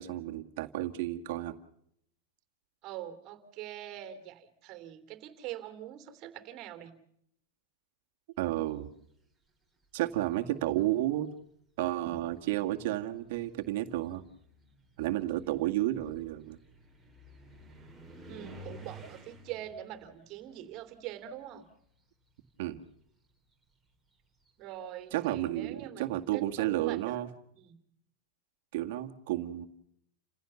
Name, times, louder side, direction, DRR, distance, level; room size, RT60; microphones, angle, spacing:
voice 1, 0.0-1.6 8.4-8.9 9.9-11.3 11.8-14.2 15.0-16.6 22.6-22.8 25.1-27.3 28.7-29.7, right 15 dB, 60° right, 4 dB, 1.9 m, -32 dB
voice 2, 2.8-6.9 18.3-21.6 24.6-27.2 27.6-27.7, right 12 dB, 35° right, 9 dB, 3.1 m, -44 dB
sound 1, 9.8-10.4 11.4-11.5 12.0-21.9 22.2-24.9, right 1 dB, ahead, 4.0 m, -53 dB
29.5 x 16.0 x 7.0 m, 0.71 s
supercardioid pair, 155°, 0 cm